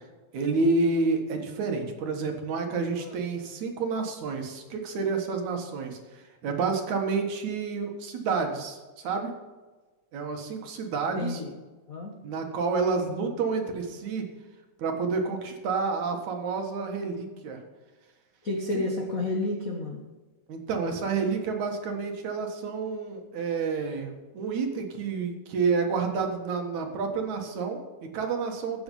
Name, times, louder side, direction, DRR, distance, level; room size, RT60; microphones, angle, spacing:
voice 1, 0.3-9.3 10.1-11.4 12.2-14.3 14.8-17.6 18.7-18.8 20.5-28.8, right 4 dB, 65° right, 4 dB, 2.8 m, -29 dB
voice 2, 11.2-11.5 11.9-12.1 18.4-20.0, left 2 dB, 80° left, 1 dB, 0.7 m, -30 dB
15.0 x 7.0 x 5.4 m, 1.3 s
omnidirectional pair, 3.8 m